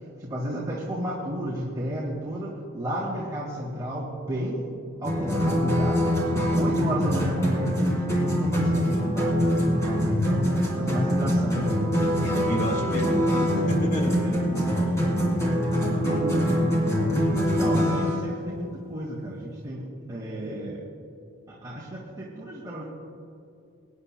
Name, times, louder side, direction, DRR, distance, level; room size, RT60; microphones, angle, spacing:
voice 1, 0.2-4.7 5.0-6.2 6.5-12.0 14.1-15.5 16.0-16.5 17.2-19.8 20.1-20.8 21.5-22.8, right 1 dB, 15° right, -6 dB, 1.7 m, -33 dB
sound 1, 5.0-18.2, equal, 15° left, 2.7 m, -24 dB
voice 2, 12.2-14.2 15.7-16.5, equal, 35° left, 2 dB, 1.6 m, -32 dB
23.5 x 10.0 x 2.2 m, 2.6 s
head